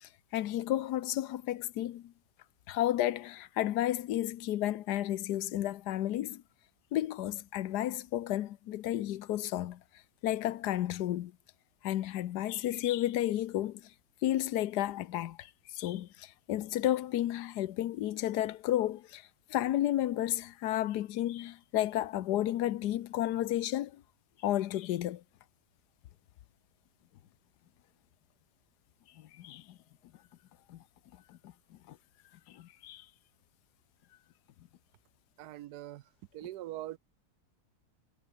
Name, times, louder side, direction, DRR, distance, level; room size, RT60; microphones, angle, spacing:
voice 1, 0.0-2.1 2.7-6.4 6.9-9.8 10.2-11.3 11.8-13.8 14.2-24.0 24.4-25.2 29.2-29.8 30.7-30.8 31.3-31.5 31.9-32.0 32.5-33.1, left 13 dB, 85° left, 1.4 m, -32 dB
voice 2, 35.4-36.0 36.3-37.0, right 14 dB, 80° right, 1.2 m, -42 dB
omnidirectional pair, 1.7 m